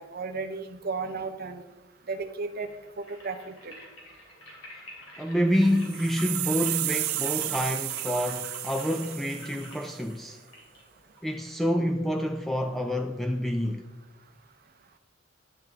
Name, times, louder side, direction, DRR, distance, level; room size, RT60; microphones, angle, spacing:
voice 1, 0.0-1.6 2.1-2.7 3.0-3.7, right 4 dB, 45° right, 0.6 m, -34 dB
sound 1, 2.5-11.5, equal, 70° left, 2.8 m, -46 dB
voice 2, 5.2-10.4 11.2-13.8, equal, ahead, 0.3 m, -27 dB
sound 2, 5.7-9.9, right 19 dB, 80° right, 0.3 m, -32 dB
10.0 x 8.0 x 3.5 m
head